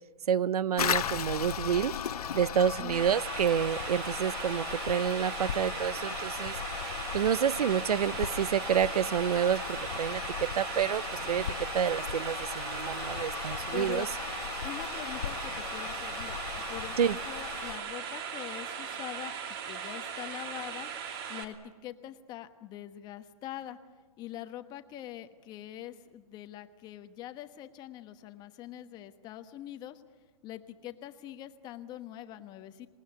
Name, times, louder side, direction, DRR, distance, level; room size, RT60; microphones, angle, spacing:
voice 1, 0.3-1.9 2.3-6.6 7.1-11.5 11.7-14.1 17.0-17.2, right 8 dB, 80° right, 20 dB, 0.7 m, -29 dB
Toilet flush, 0.8-17.8, left 8 dB, 80° left, 1.2 m, -37 dB
sound 1, 2.9-21.4, right 7 dB, 40° right, 2.7 m, -39 dB
voice 2, 13.7-14.1 14.6-16.4 16.7-19.3 19.6-20.9 21.3-23.8 24.2-30.0 30.4-32.9, left 12 dB, 20° left, 9 dB, 1.2 m, -43 dB
27.5 x 19.5 x 9.7 m, 1.4 s
hypercardioid pair, 150°, 19 cm